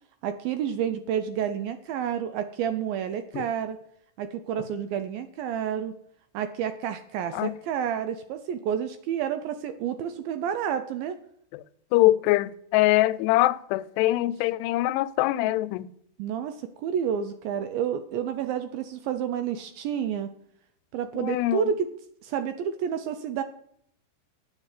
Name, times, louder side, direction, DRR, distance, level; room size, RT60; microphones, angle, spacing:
voice 1, 0.2-3.8 4.2-5.9 6.3-11.2 16.2-20.3 20.9-21.9 22.2-23.4, right 8 dB, 80° right, 2.2 m, -30 dB
voice 2, 11.9-15.9 21.2-21.7, left 16 dB, 90° left, 2.7 m, -23 dB
8.9 x 7.6 x 8.2 m
omnidirectional pair, 4.7 m